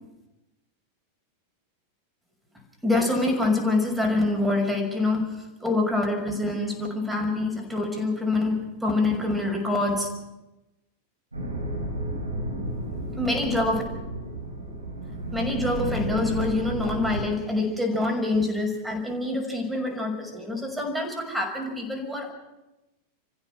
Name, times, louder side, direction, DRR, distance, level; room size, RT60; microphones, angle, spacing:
voice 1, 2.8-10.1 13.2-13.8 15.3-22.3, left 2 dB, 5° right, 2 dB, 5.9 m, -26 dB
sound 1, 11.3-17.2, right 1 dB, 80° right, 4.5 m, -32 dB
28.0 x 15.5 x 6.3 m, 0.99 s
figure-of-eight pair, 90°, 0 cm